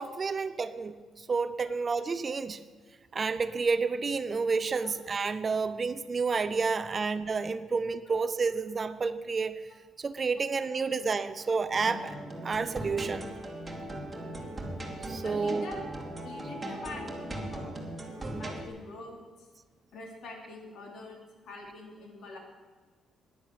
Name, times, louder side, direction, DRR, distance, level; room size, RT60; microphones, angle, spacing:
voice 1, 0.0-2.6 3.1-9.6 10.0-12.1 12.4-13.3 15.0-15.6 18.4-18.5, right 4 dB, 35° right, 11 dB, 0.7 m, -30 dB
sound 1, 11.7-18.7, right 1 dB, 20° right, 2.5 m, -39 dB
voice 2, 15.2-15.9 16.2-17.7 18.1-19.5 19.9-22.4, left 3 dB, 70° left, 2 dB, 3.1 m, -44 dB
10.5 x 10.5 x 9.1 m, 1.4 s
cardioid pair, 90°, 0 cm